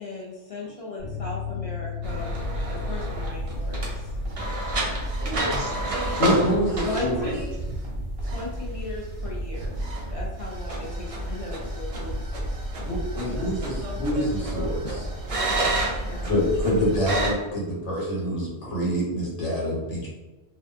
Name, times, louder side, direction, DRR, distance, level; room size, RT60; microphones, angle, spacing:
voice 1, 0.0-4.1 6.8-7.6 8.2-9.8 10.1-12.2 14.9-15.3 15.7-16.3, left 2 dB, 60° left, -4 dB, 0.3 m, -37 dB
sound 1, 1.0-8.1 8.3-8.5 8.8-8.9, left 8 dB, 10° right, 0.7 m, -39 dB
sound 2, 2.0-17.3, right 1 dB, 55° right, 0.4 m, -30 dB
voice 2, 4.6-7.3 8.3-8.4 8.7-8.8 9.8-9.9 12.6-12.7 13.2-15.1 19.6-19.8, right 2 dB, 90° right, -2 dB, 1.1 m, -40 dB
voice 3, 6.2-7.3 12.9-14.8 16.2-20.1, equal, 85° left, -5 dB, 1.3 m, -26 dB
2.6 x 2.3 x 2.3 m, 1.1 s
omnidirectional pair, 1.2 m